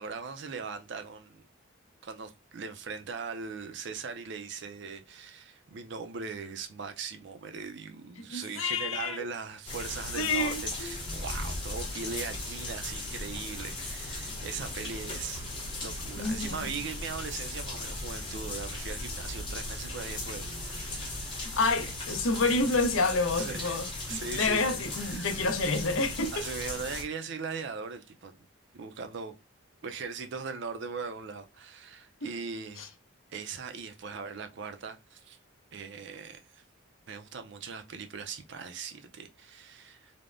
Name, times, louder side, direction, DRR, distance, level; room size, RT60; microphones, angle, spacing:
voice 1, 0.0-1.4 2.0-15.5 15.8-21.4 23.4-23.7 24.1-25.3 26.3-28.3 28.7-29.4 29.8-32.9 33.3-35.4 35.7-36.6 37.1-40.1, right 5 dB, 60° right, 0.4 m, -40 dB
voice 2, 8.3-9.2 10.1-10.9 16.2-16.6 21.4-26.5 32.2-32.3 32.8-32.9, left 3 dB, 85° left, 0.6 m, -29 dB
sound 1, 9.7-27.0, left 2 dB, 25° left, 0.8 m, -37 dB
3.3 x 2.0 x 2.4 m
head